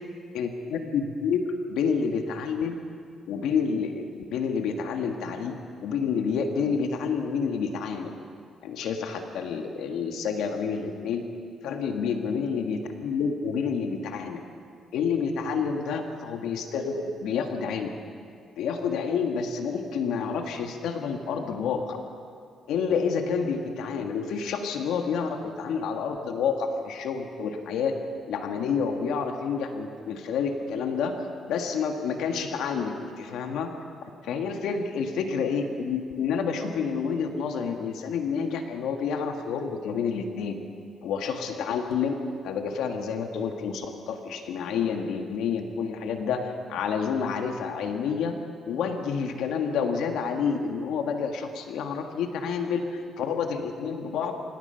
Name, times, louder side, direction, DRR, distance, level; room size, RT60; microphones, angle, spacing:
voice 1, 0.3-2.8 3.3-8.1 8.6-11.2 11.6-14.4 14.9-17.9 18.6-22.0 22.7-27.9 28.3-31.1 31.5-33.7 34.2-40.6 41.0-48.4 48.6-54.3, left 6 dB, 80° left, 4 dB, 1.7 m, -29 dB
26.5 x 17.5 x 5.7 m, 2.2 s
cardioid pair, 95°, 0 cm